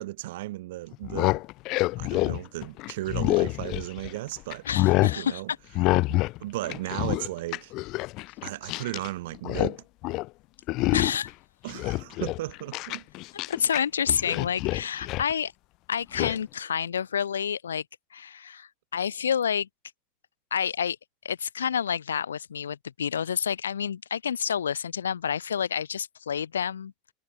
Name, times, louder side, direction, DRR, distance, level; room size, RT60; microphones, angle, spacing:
voice 1, 0.0-1.4 2.0-4.7 5.2-5.5 6.1-7.7 8.4-9.8 11.6-13.1, right 17 dB, 65° right, 6.0 m, -35 dB
sound 1, 0.9-4.2 4.5-5.2 5.7-6.4 6.6-9.1 9.3-9.8 10.0-10.3 10.7-11.3 11.7-13.8 14.1-15.3 16.1-16.4, left 21 dB, 55° left, 7.3 m, -27 dB
voice 2, 4.7-5.4 10.9-11.3 13.5-15.5 15.9-17.8 18.1-19.7 20.5-21.0 21.2-26.9, left 8 dB, 80° left, 3.4 m, -29 dB
figure-of-eight pair, 75°, 0 cm